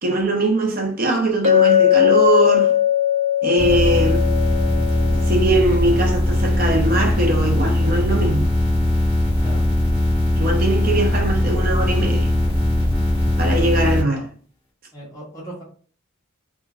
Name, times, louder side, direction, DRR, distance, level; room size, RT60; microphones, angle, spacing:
voice 1, 0.0-2.7 3.4-4.3 5.1-8.5 10.4-12.3 13.4-14.3, right 2 dB, 40° right, 0.5 m, -21 dB
Chink clink, 1.4-5.6, left 10 dB, 85° right, 0.9 m, -18 dB
sound 1, 3.6-14.0, left 1 dB, 10° right, 1.1 m, -20 dB
voice 2, 14.9-15.6, right 1 dB, 15° left, 0.8 m, -36 dB
3.3 x 2.2 x 2.3 m
head